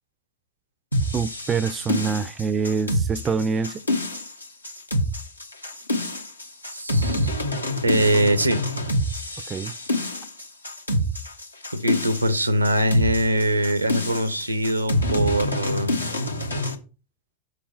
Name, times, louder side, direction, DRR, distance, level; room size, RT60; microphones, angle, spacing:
sound 1, 0.9-16.8, left 1 dB, 85° left, 1.1 m, -27 dB
voice 1, 1.1-3.8 9.5-9.7, right 5 dB, 20° right, 0.4 m, -25 dB
voice 2, 6.7-7.3 7.8-8.6 11.7-16.0, right 1 dB, 85° right, 0.8 m, -22 dB
6.5 x 5.6 x 4.4 m
figure-of-eight pair, 90°, 0 cm